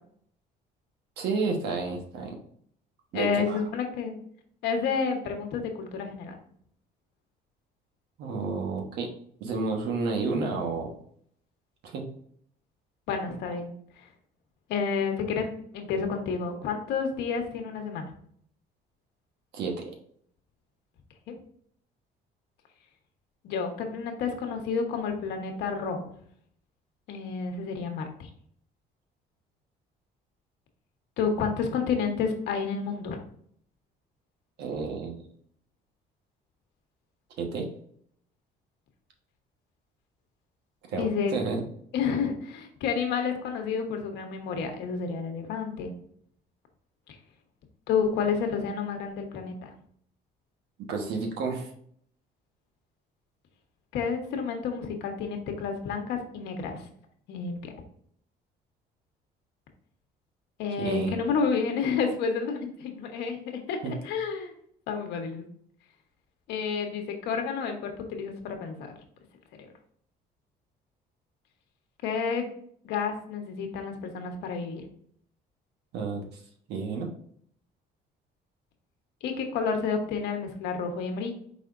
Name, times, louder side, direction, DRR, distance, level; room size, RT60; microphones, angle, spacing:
voice 1, 1.2-2.4 3.1-3.6 8.2-9.1 9.4-11.0 11.8-12.0 19.5-19.9 34.6-35.2 37.4-37.7 40.9-41.6 50.9-51.7 60.8-61.2 63.8-63.9 75.9-76.2 76.7-77.1, right 4 dB, 75° right, 2 dB, 1.3 m, -30 dB
voice 2, 3.1-4.2 4.6-6.4 13.1-14.1 14.7-18.1 21.3-21.4 23.4-26.1 27.1-28.3 31.2-33.2 40.9-41.3 41.9-45.9 47.9-49.7 53.9-56.9 57.3-57.7 60.6-64.5 64.9-65.4 66.5-68.9 69.6-69.7 72.0-72.5 72.8-74.8 79.2-81.3, left 5 dB, 85° left, 4 dB, 1.1 m, -30 dB
5.1 x 4.2 x 2.5 m, 0.63 s
cardioid pair, 110°, 17 cm